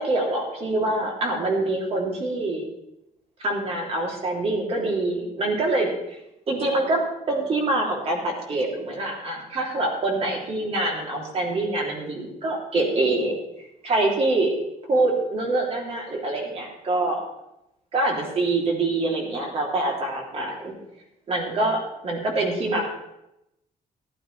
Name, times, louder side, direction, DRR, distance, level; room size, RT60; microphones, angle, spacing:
voice 1, 0.0-2.7 3.4-6.2 6.5-7.0 7.3-13.4 13.8-14.5 14.9-17.2 17.9-20.7 21.3-21.8 22.0-22.9, right 2 dB, 45° right, -1 dB, 3.3 m, -25 dB
14.5 x 13.0 x 3.4 m, 0.86 s
cardioid pair, 160°, 15 cm